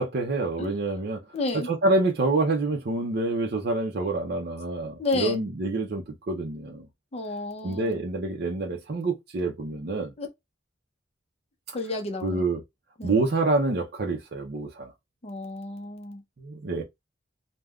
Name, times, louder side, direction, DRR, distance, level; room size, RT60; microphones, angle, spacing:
voice 1, 0.0-1.2 1.5-6.9 7.6-10.1 12.2-12.6 13.0-14.9 16.4-16.8, right 2 dB, 55° right, 0.5 m, -27 dB
voice 2, 1.3-1.7 5.0-5.4 7.1-8.0 10.2-10.3 11.7-12.4 13.0-13.2 15.2-16.2, left 2 dB, 35° left, 0.6 m, -31 dB
3.4 x 2.1 x 2.3 m
head